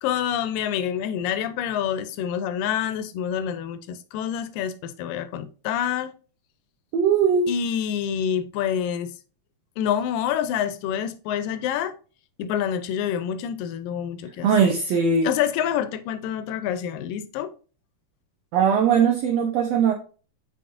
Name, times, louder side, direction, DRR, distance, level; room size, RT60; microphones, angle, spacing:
voice 1, 0.0-6.1 7.5-9.1 9.8-12.0 12.4-14.7 15.2-17.5, left 9 dB, 85° left, 2.3 m, -27 dB
voice 2, 6.9-7.5 14.4-15.3 18.5-19.9, right 6 dB, 80° right, 1.5 m, -20 dB
7.7 x 5.3 x 2.6 m
omnidirectional pair, 3.9 m